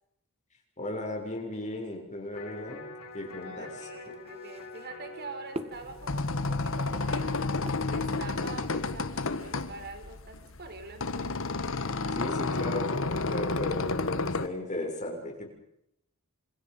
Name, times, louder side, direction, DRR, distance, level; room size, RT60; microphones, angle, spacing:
voice 1, 0.8-2.9 3.1-3.9 12.1-13.0 13.3-15.5, left 1 dB, 35° left, 2 dB, 7.0 m, -36 dB
Electric guitar, 2.3-8.4, left 3 dB, 85° left, 6.5 m, -47 dB
sound 1, 2.6-8.7, right 1 dB, 30° right, 1.8 m, -45 dB
voice 2, 3.4-7.4 7.9-11.0, right 3 dB, 50° right, 7 dB, 4.6 m, -44 dB
sound 2, 5.8-14.5, left 3 dB, 65° left, 1.5 m, -31 dB
29.0 x 27.0 x 5.5 m, 0.79 s
head